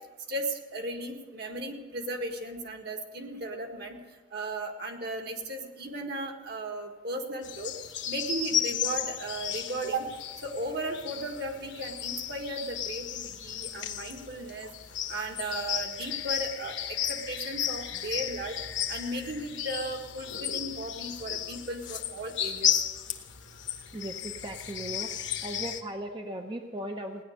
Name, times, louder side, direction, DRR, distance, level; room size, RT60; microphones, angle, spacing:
voice 1, 0.3-4.0 4.3-7.7 8.1-10.1 10.4-14.7 15.1-16.8 17.1-18.6 18.9-22.7, right 1 dB, 55° right, 3 dB, 1.8 m, -36 dB
sound 1, 7.4-25.8, left 9 dB, 60° left, 1.2 m, -34 dB
voice 2, 23.9-25.1 25.4-27.2, right 1 dB, 25° right, 3 dB, 0.7 m, -37 dB
17.0 x 10.5 x 6.6 m, 1.3 s
head